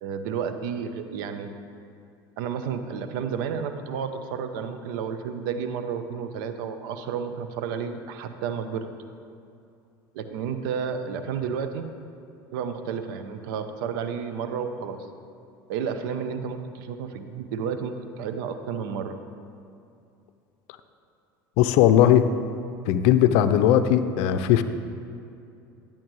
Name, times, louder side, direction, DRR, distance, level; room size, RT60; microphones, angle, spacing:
voice 1, 0.0-1.5 2.4-8.9 10.1-11.8 12.5-15.0 15.7-19.1, right 7 dB, 75° right, 8 dB, 0.7 m, -31 dB
voice 2, 21.6-22.3 22.9-24.6, left 11 dB, 65° left, 11 dB, 0.5 m, -18 dB
10.5 x 8.7 x 3.1 m, 2.6 s
hypercardioid pair, 80°, 11 cm